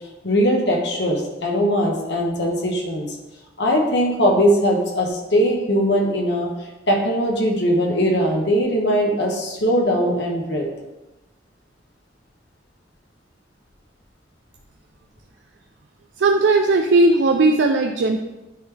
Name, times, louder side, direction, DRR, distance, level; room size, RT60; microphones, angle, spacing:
voice 1, 0.2-3.2 3.6-6.5 6.9-10.7, equal, 80° left, 0 dB, 1.3 m, -20 dB
voice 2, 16.2-18.2, right 2 dB, 90° right, 4 dB, 0.4 m, -17 dB
9.2 x 3.9 x 3.3 m, 1.0 s
head